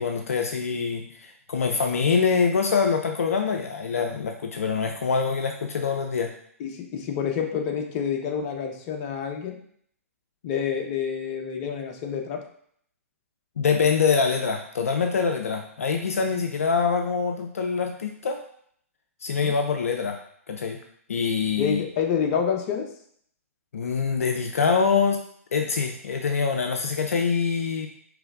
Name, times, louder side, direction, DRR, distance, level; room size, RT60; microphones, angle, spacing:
voice 1, 0.0-6.3 13.6-18.4 19.2-20.2 20.5-20.8 21.1-21.8 23.7-25.2 25.5-27.9, left 5 dB, 70° left, 4 dB, 0.5 m, -24 dB
voice 2, 6.6-9.6 10.4-12.4 19.4-19.5 21.6-22.9, left 7 dB, 35° left, 3 dB, 0.7 m, -28 dB
4.9 x 3.2 x 2.4 m, 0.64 s
figure-of-eight pair, 115°, 8 cm